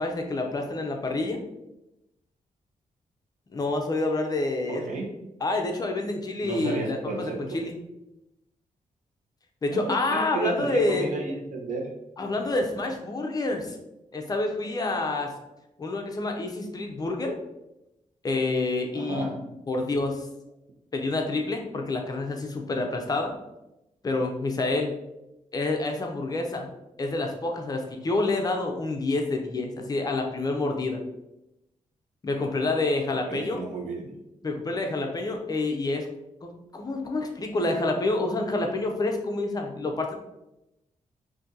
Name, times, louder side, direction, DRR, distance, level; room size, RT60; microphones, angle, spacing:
voice 1, 0.0-1.4 3.5-4.9 5.4-7.8 9.6-11.1 12.2-13.8 14.1-15.3 15.8-17.4 18.2-19.4 19.7-20.3 20.9-23.3 24.0-25.0 25.5-26.7 27.0-31.0 32.2-33.6 34.4-36.1 36.4-40.1, left 2 dB, 30° left, 3 dB, 0.5 m, -28 dB
voice 2, 4.7-5.1 6.4-7.6 9.7-11.9 18.9-19.4 33.3-34.1, right 2 dB, 70° right, -2 dB, 0.9 m, -33 dB
2.7 x 2.6 x 3.7 m, 0.90 s
wide cardioid pair, 140°, 13 cm